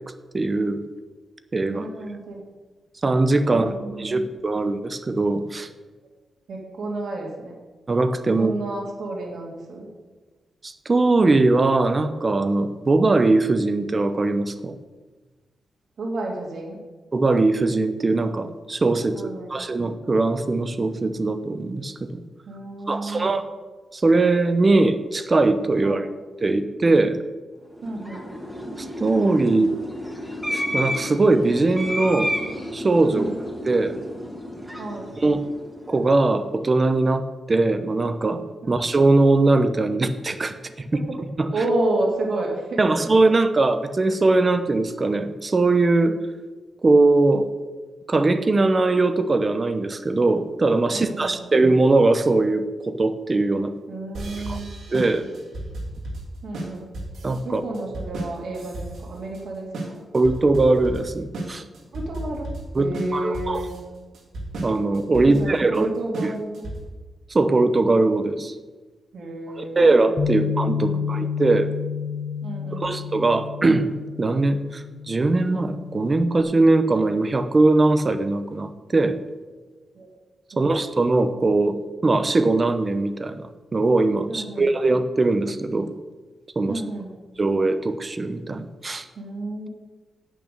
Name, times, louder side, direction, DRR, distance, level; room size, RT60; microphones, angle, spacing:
voice 1, 0.3-0.8 1.5-1.9 3.0-5.7 7.9-8.5 10.6-14.7 17.1-22.1 22.9-23.5 23.9-26.1 26.4-27.2 28.8-29.8 30.5-32.3 32.7-33.3 33.7-33.9 35.2-35.4 35.9-38.4 38.7-40.6 41.4-41.5 42.8-46.2 46.8-47.5 48.1-53.7 54.5-54.6 54.9-55.2 57.2-57.6 60.1-61.6 62.7-63.6 64.6-65.9 67.3-68.6 69.6-71.7 72.7-73.9 74.2-79.2 80.6-85.9 86.6-86.8 87.4-89.1, right 2 dB, 25° right, 10 dB, 0.7 m, -21 dB
voice 2, 1.6-2.4 3.5-4.3 6.5-7.6 8.4-9.9 16.0-16.8 19.1-19.6 22.5-23.4 25.8-26.1 27.8-28.3 33.1-33.4 34.8-35.2 41.5-42.8 50.9-51.4 53.9-54.8 56.4-56.9 57.4-60.0 61.9-63.7 65.2-66.7 69.1-69.9 70.3-70.5 70.8-71.2 72.4-72.9 79.9-80.1 80.5-80.8 84.3-84.7 86.7-87.1 89.2-89.7, right 2 dB, 60° right, 0 dB, 2.4 m, -31 dB
sound 1, 27.7-36.2, equal, ahead, 1.6 m, -32 dB
sound 2, 54.1-67.0, right 1 dB, 75° right, 2.9 m, -34 dB
Bass guitar, 70.2-76.4, left 7 dB, 40° left, 0.7 m, -30 dB
9.2 x 8.5 x 6.7 m, 1.3 s
wide cardioid pair, 170°, 0 cm